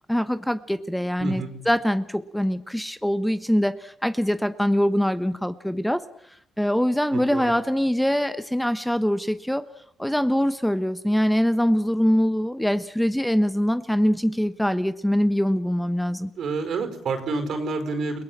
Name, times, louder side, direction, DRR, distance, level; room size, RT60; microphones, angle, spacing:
voice 1, 0.1-6.0 6.6-9.7 10.0-16.3, equal, 5° left, 12 dB, 1.2 m, -23 dB
voice 2, 1.2-1.5 7.1-7.5 16.4-18.2, right 4 dB, 65° right, 8 dB, 5.0 m, -28 dB
30.0 x 18.0 x 7.5 m, 0.71 s
cardioid pair, 90°, 0 cm